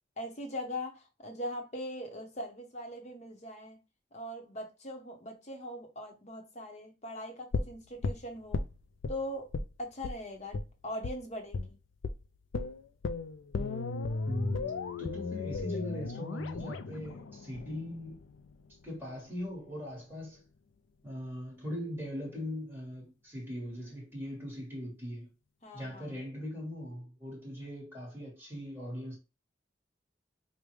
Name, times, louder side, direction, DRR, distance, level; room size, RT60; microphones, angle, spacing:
voice 1, 0.2-3.8 4.1-8.6 9.1-9.5 9.8-10.6 10.8-11.8 25.6-26.1, left 1 dB, 35° left, 0.9 m, -41 dB
sound 1, 7.5-9.2 9.5-9.7 10.0-10.2 10.5-10.7 11.0-11.2 11.5-11.7 12.0-12.2 12.5-18.5 18.8-18.9, left 3 dB, 85° left, 0.4 m, -35 dB
voice 2, 14.3-18.2 18.7-20.4 21.0-25.3 25.7-29.2, left 1 dB, 10° right, 1.3 m, -40 dB
5.0 x 2.1 x 3.1 m
head